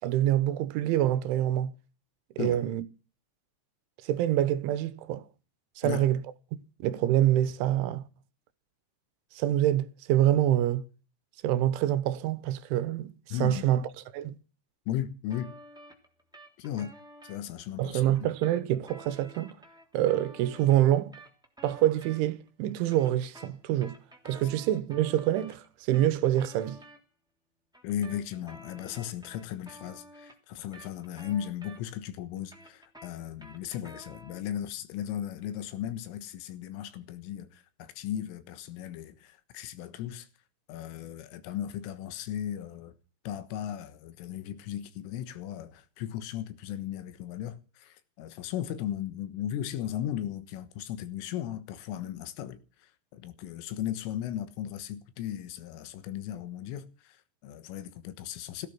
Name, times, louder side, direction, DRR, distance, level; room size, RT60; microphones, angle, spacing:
voice 1, 0.0-1.7 2.4-2.8 4.0-5.2 5.8-6.2 6.8-8.0 9.3-10.8 11.4-13.1 13.4-13.8 14.1-14.4 17.8-19.6 19.9-21.2 21.6-24.0 24.3-26.8, right 12 dB, 80° right, 3.4 m, -26 dB
voice 2, 13.3-13.7 14.9-15.6 16.6-16.9 17.2-18.0 27.8-40.3 40.7-42.9 43.3-58.7, left 11 dB, 85° left, 3.9 m, -36 dB
sound 1, 15.3-17.4 18.1-22.5 22.8-27.0 27.7-32.1 32.4-34.5, equal, ahead, 1.6 m, -51 dB
16.5 x 14.0 x 6.1 m
omnidirectional pair, 5.6 m